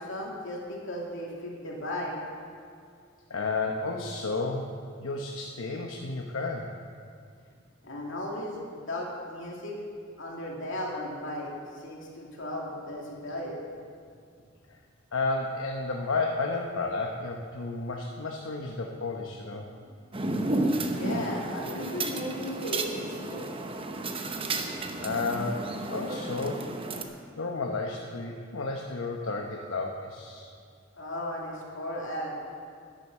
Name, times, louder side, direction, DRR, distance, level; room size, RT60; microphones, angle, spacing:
voice 1, 0.0-2.2 7.8-9.7 10.2-13.6 19.8-19.9 21.0-23.5 30.9-32.3, left 1 dB, 70° left, -2 dB, 2.6 m, -36 dB
voice 2, 3.3-4.7 5.0-6.7 14.7-14.8 15.1-19.7 25.0-26.7 27.1-30.5, left 3 dB, 85° left, 0 dB, 0.9 m, -32 dB
sound 1, 20.1-27.0, right 2 dB, 30° right, 0.9 m, -32 dB
11.0 x 10.5 x 6.6 m, 2.2 s
head